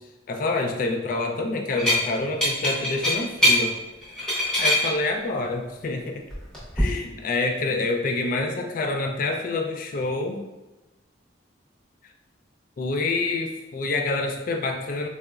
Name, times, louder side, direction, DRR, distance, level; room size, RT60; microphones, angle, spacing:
voice 1, 0.3-3.8 4.6-6.2 6.8-10.4 12.8-15.1, left 3 dB, 45° left, 4 dB, 0.3 m, -27 dB
sound 1, 1.8-2.0 2.4-3.6 4.0-4.9 6.3-6.8, left 1 dB, 5° left, 0.6 m, -21 dB
3.7 x 2.0 x 2.3 m, 1.1 s
head